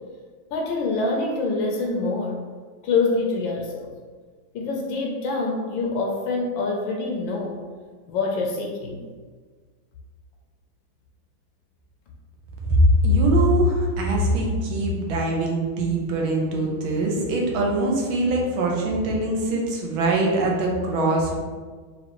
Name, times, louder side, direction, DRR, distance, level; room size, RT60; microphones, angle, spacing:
voice 1, 0.5-2.5 2.8-3.9 4.5-7.6 8.1-9.0, left 3 dB, 75° left, 0 dB, 1.3 m, -25 dB
voice 2, 12.6-21.4, right 1 dB, 85° right, -1 dB, 1.5 m, -22 dB
4.9 x 2.6 x 2.9 m, 1.5 s
omnidirectional pair, 2.2 m